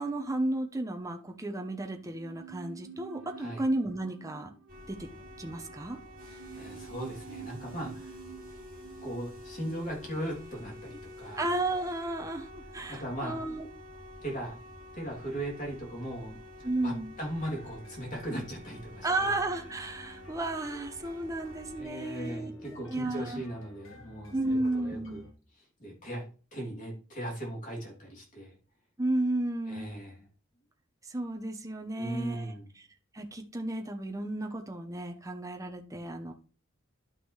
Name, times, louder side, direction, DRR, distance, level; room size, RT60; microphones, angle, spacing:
voice 1, 0.0-4.5 4.9-5.0 5.4-6.0 11.4-13.7 16.6-17.1 19.0-23.4 24.3-25.3 29.0-29.9 31.1-32.9 33.1-36.3, right 2 dB, 15° right, 4 dB, 0.8 m, -33 dB
sound 1, 2.0-11.3 11.6-11.7, right 8 dB, 90° right, 1.0 m, -50 dB
sound 2, 4.7-21.8, left 1 dB, 45° right, 2.0 m, -48 dB
voice 2, 6.2-8.1 9.0-11.4 12.9-13.4 14.2-14.6 14.9-19.4 21.8-24.3 24.7-25.2 25.8-26.2 26.5-28.6 29.7-30.3 31.9-32.7, right 1 dB, 40° left, -2 dB, 2.9 m, -38 dB
sound 3, 17.2-25.3, left 1 dB, 85° left, 2.1 m, -54 dB
11.5 x 5.9 x 3.2 m, 0.37 s
head